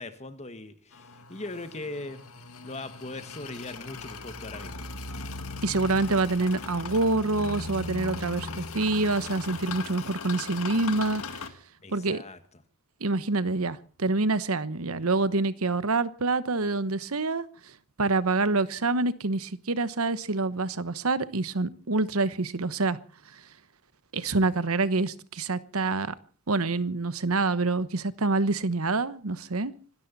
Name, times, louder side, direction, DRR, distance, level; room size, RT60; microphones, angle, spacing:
voice 1, 0.0-2.3 2.6-4.9 11.8-12.4, left 2 dB, 30° left, 1.6 m, -40 dB
sound 1, 0.9-11.5, left 4 dB, 75° left, 2.0 m, -38 dB
voice 2, 5.6-11.2 11.9-12.2 13.0-17.5 18.0-23.0 23.3-23.4 24.1-26.1 26.5-29.7, right 3 dB, 75° right, 1.1 m, -26 dB
26.0 x 13.0 x 4.1 m
head